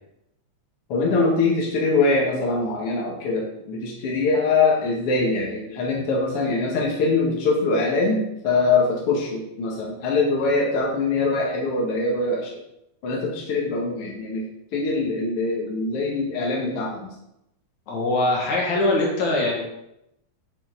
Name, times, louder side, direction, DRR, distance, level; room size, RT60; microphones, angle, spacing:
voice 1, 0.9-12.6 13.0-14.4 14.7-17.1, left 3 dB, 55° left, -3 dB, 2.4 m, -23 dB
voice 2, 17.9-19.6, left 2 dB, 70° left, -2 dB, 3.4 m, -22 dB
10.0 x 6.8 x 4.0 m, 0.83 s
omnidirectional pair, 3.4 m